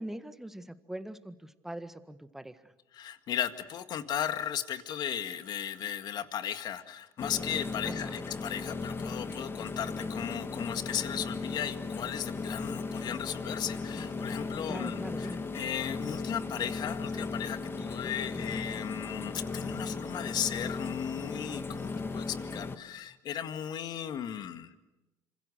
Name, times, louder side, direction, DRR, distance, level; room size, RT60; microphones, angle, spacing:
voice 1, 0.0-2.7 7.8-8.2 14.7-15.5 18.3-18.7, right 1 dB, 5° right, 10 dB, 1.6 m, -42 dB
voice 2, 2.9-24.7, left 9 dB, 60° left, 9 dB, 2.0 m, -36 dB
sound 1, 7.2-22.8, left 4 dB, 30° left, 1.9 m, -37 dB
27.0 x 26.0 x 6.6 m, 0.99 s
cardioid pair, 100°, 8 cm